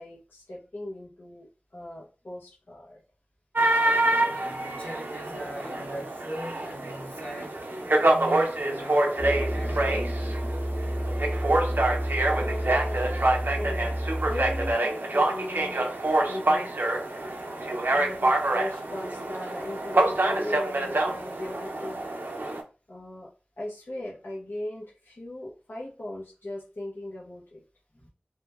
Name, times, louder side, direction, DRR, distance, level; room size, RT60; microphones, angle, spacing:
voice 1, 0.0-3.0 12.4-13.0 13.6-15.8 16.3-16.7 17.4-17.6 17.9-22.1 22.9-23.3 23.6-27.6, left 1 dB, 70° left, 0.5 m, -38 dB
sound 1, 3.6-22.6, right 2 dB, 60° right, 0.4 m, -26 dB
voice 2, 4.2-7.6 8.0-9.1 9.5-10.3 27.9-28.1, equal, 35° left, 1.0 m, -40 dB
sound 2, 9.2-14.7, equal, ahead, 0.5 m, -30 dB
2.9 x 2.0 x 2.2 m
wide cardioid pair, 55°, 4 cm